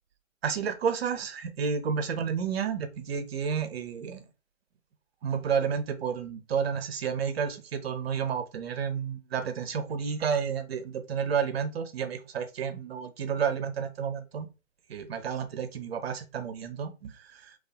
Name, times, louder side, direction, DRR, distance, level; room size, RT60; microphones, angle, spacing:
voice 1, 0.4-4.3 5.2-14.5 14.9-17.6, right 7 dB, 50° right, 9 dB, 0.5 m, -31 dB
2.6 x 2.3 x 2.2 m, 0.30 s
figure-of-eight pair, 140°, 40 cm